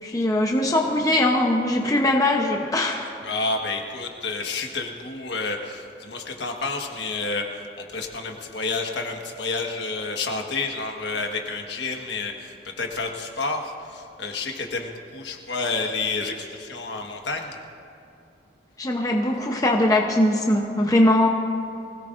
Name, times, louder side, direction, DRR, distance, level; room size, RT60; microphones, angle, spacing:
voice 1, 0.0-3.0 18.8-21.3, left 1 dB, 20° left, 1 dB, 0.8 m, -21 dB
voice 2, 3.2-17.6, left 3 dB, 65° left, 2 dB, 1.5 m, -30 dB
24.0 x 17.5 x 2.6 m, 2.6 s
head